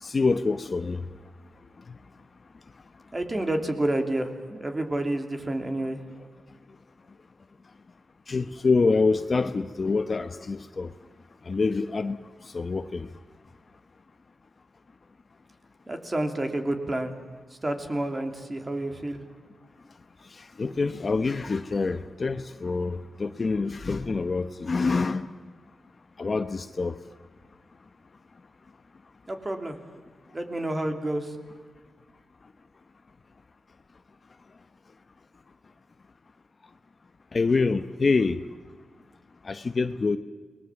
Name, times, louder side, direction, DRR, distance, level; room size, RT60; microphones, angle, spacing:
voice 1, 0.0-1.0 8.3-10.9 11.5-12.2 12.4-13.1 20.3-25.3 26.2-27.0 37.3-38.4 39.4-40.2, left 4 dB, 35° left, 0.9 m, -26 dB
voice 2, 3.1-6.1 15.9-17.2 17.5-19.2 29.3-29.8 30.3-31.4, right 1 dB, 20° right, 2.9 m, -29 dB
29.5 x 20.5 x 7.3 m
wide cardioid pair, 125°, 0 cm